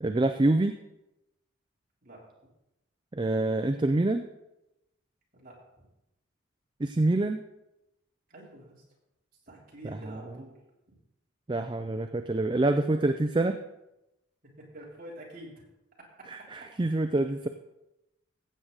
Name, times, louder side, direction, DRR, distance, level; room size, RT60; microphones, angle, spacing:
voice 1, 0.0-0.7 3.1-4.3 6.8-7.4 10.0-10.2 11.5-13.6 16.3-17.5, right 2 dB, 20° right, 7 dB, 0.4 m, -26 dB
voice 2, 5.3-5.9 8.3-8.8 9.5-10.6 10.9-11.0 14.6-15.6 16.2-16.3 16.6-16.7, right 1 dB, 40° right, -4 dB, 3.5 m, -47 dB
15.5 x 7.9 x 4.0 m, 0.91 s
head